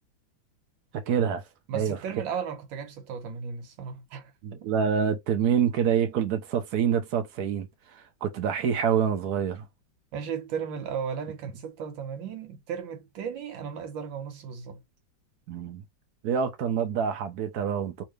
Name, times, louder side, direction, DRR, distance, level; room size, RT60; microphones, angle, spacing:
voice 1, 0.9-1.4 1.7-2.0 4.4-7.7 8.2-9.7 15.5-15.8 16.2-18.0, right 7 dB, 65° right, 1.1 m, -26 dB
voice 2, 1.7-4.3 10.1-14.8, right 7 dB, 80° right, 1.7 m, -35 dB
3.2 x 2.8 x 3.2 m
omnidirectional pair, 2.1 m